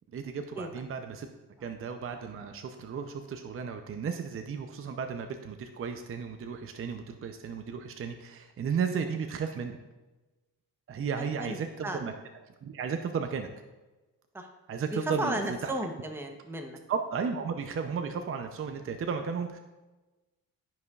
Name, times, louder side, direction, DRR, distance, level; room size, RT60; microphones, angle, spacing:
voice 1, 0.1-1.3 1.6-9.8 10.9-12.1 12.6-13.5 14.7-15.7 16.9-19.6, right 6 dB, 35° right, 6 dB, 0.6 m, -34 dB
voice 2, 11.2-12.0 14.3-14.5 14.9-16.8, right 1 dB, 5° right, 4 dB, 0.8 m, -34 dB
12.0 x 5.2 x 2.4 m, 1.1 s
cardioid pair, 95°, 37 cm